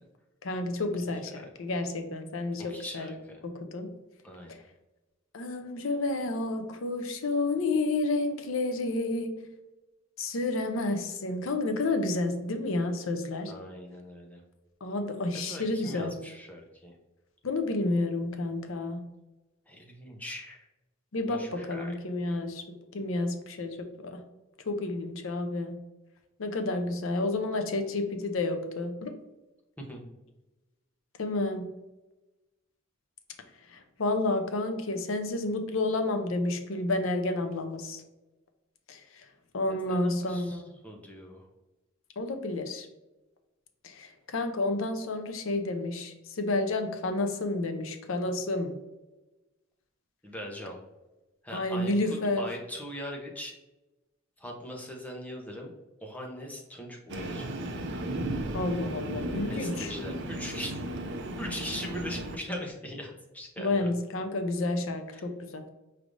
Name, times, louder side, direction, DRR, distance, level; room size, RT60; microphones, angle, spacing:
voice 1, 0.4-3.1 3.7-3.9 5.3-9.5 10.2-13.5 14.8-16.1 17.4-19.0 21.1-22.6 22.9-24.2 24.7-25.8 26.4-29.1 31.2-31.7 33.7-38.0 38.9-39.2 39.5-40.7 42.2-42.9 43.8-48.7 51.5-52.5 58.5-59.9 63.6-65.6, left 2 dB, 70° left, 6 dB, 0.6 m, -30 dB
voice 2, 2.6-3.4 4.2-4.6 13.5-14.4 15.3-17.0 19.7-20.7 21.3-22.0 22.3-22.4 29.8-30.0 39.7-41.5 50.2-50.8 51.4-53.5 54.4-55.7 56.0-57.6 59.5-63.9 65.1-65.3, equal, 10° left, 0 dB, 0.7 m, -41 dB
Train, 57.1-62.4, right 1 dB, 60° right, 0.5 m, -35 dB
4.8 x 3.3 x 2.5 m, 1.1 s
head